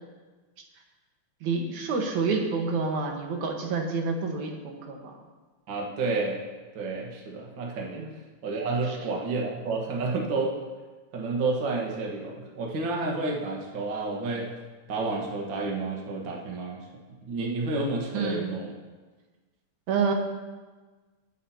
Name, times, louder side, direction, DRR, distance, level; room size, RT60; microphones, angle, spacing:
voice 1, 1.4-5.1 8.0-8.1 8.9-9.0 18.1-18.5 19.9-20.1, right 4 dB, 75° right, 2 dB, 2.7 m, -28 dB
voice 2, 5.7-6.4 6.7-8.1 8.4-10.6 11.1-14.5 14.9-16.8 17.2-18.7, right 3 dB, 45° right, -1 dB, 1.9 m, -30 dB
24.5 x 8.3 x 2.9 m, 1.3 s
omnidirectional pair, 3.4 m